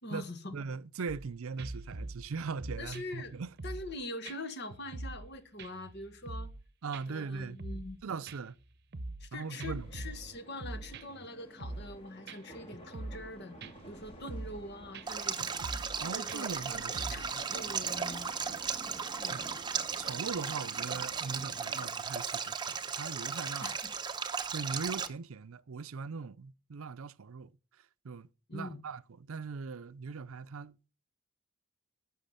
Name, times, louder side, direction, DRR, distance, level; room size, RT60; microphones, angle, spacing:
voice 1, 0.0-0.6 2.8-3.3 3.6-6.5 7.1-8.0 9.2-13.5 13.9-15.8 16.1-18.3 19.2-19.5 23.6-23.9 28.5-28.8, left 2 dB, 50° left, 1.6 m, -44 dB
voice 2, 0.5-3.5 6.8-7.6 8.0-8.6 9.3-9.9 16.0-17.3 19.3-19.6 20.0-23.8 24.3-27.5 28.0-30.9, right 5 dB, 70° right, 0.5 m, -40 dB
sound 1, 1.1-1.3 1.6-4.0 4.2-4.4 4.7-5.3 5.6-6.6 6.9-7.0 7.4-8.0 8.3-9.3 9.6-11.3 11.6-12.0 12.3-12.4 12.7-13.3 13.6-13.9 14.3-14.6 14.9-15.1 15.4-16.0 16.3-17.3, right 2 dB, 50° right, 0.9 m, -43 dB
sound 2, 9.4-21.9, right 1 dB, 25° left, 2.4 m, -52 dB
Stream, 15.1-25.1, right 6 dB, 20° right, 0.8 m, -36 dB
12.0 x 7.0 x 5.7 m
head